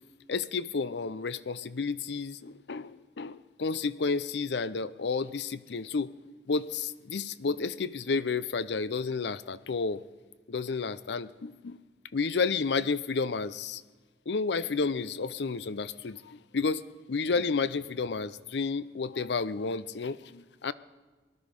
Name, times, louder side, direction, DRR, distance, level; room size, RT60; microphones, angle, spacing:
voice 1, 0.3-6.1 6.5-10.0 10.5-11.8 12.1-13.8 14.3-16.8 17.1-20.7, left 4 dB, 75° left, 16 dB, 0.6 m, -31 dB
19.0 x 11.5 x 5.3 m, 1.3 s
head